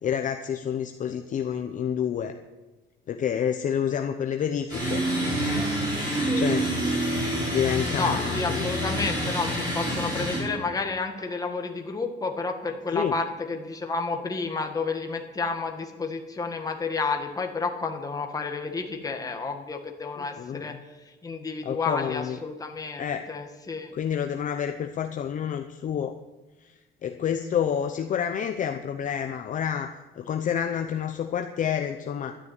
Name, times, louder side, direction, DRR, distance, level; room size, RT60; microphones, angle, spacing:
voice 1, 0.0-2.3 3.1-5.2 6.3-6.7 7.4-8.7 12.9-13.1 20.2-20.8 21.6-22.4 23.0-23.2 23.9-26.2 26.6-26.7 27.0-29.9 30.2-32.3, left 8 dB, 40° left, 6 dB, 0.8 m, -28 dB
sound 1, 4.7-10.4, right 1 dB, 20° right, 6.0 m, -27 dB
voice 2, 7.9-20.7 21.2-23.9, left 4 dB, 20° left, 4 dB, 1.7 m, -31 dB
12.0 x 10.5 x 9.8 m, 1.2 s
cardioid pair, 175°, 20 cm